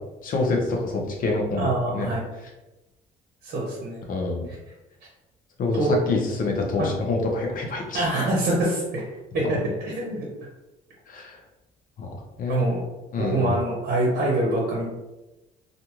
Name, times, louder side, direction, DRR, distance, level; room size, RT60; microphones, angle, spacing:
voice 1, 0.2-1.7 1.9-2.1 2.4-2.5 4.1-4.5 5.6-8.1 11.1-11.4 12.0-12.1 12.4-12.7 13.1-13.6, left 3 dB, 55° left, 0 dB, 0.7 m, -26 dB
voice 2, 1.6-2.2 3.4-4.0 5.8-5.9 6.8-6.9 7.9-9.1 9.3-10.3 12.5-12.8 13.2-14.9, right 1 dB, 55° right, -3 dB, 0.8 m, -25 dB
2.5 x 2.3 x 2.9 m, 1.0 s
cardioid pair, 110°, 17 cm